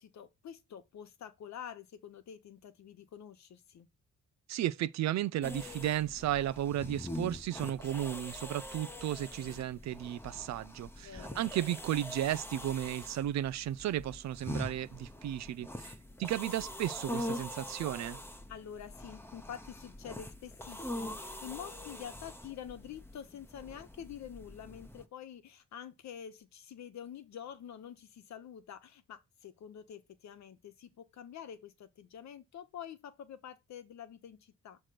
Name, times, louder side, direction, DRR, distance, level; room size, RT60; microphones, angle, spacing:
voice 1, 0.0-3.9 11.0-11.4 18.5-34.8, left 9 dB, 65° left, 1.1 m, -47 dB
voice 2, 4.5-18.2, right 12 dB, 65° right, 0.5 m, -34 dB
sound 1, 5.4-25.0, left 1 dB, 10° left, 0.9 m, -44 dB
6.4 x 3.2 x 5.8 m
cardioid pair, 90°, 30 cm